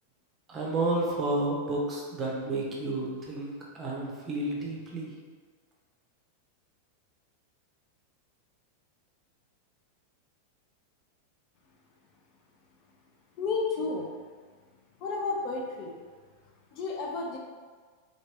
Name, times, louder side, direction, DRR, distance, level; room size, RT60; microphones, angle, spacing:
voice 1, 0.5-5.1, right 2 dB, 20° right, -3 dB, 0.7 m, -31 dB
voice 2, 13.4-14.1 15.0-16.0 16.7-17.4, left 3 dB, 40° left, -1 dB, 0.5 m, -31 dB
2.9 x 2.9 x 2.9 m, 1.5 s
figure-of-eight pair, 90°, 0 cm